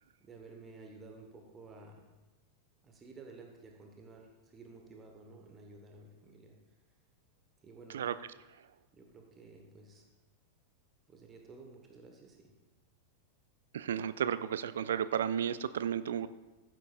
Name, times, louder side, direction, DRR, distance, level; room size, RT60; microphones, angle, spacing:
voice 1, 0.2-2.1 2.8-6.6 7.6-8.0 8.9-10.1 11.1-12.5, right 3 dB, 20° right, 2 dB, 1.2 m, -53 dB
voice 2, 13.7-16.3, right 9 dB, 60° right, 15 dB, 0.3 m, -33 dB
14.5 x 7.5 x 2.5 m, 1.2 s
figure-of-eight pair, 90°, 0 cm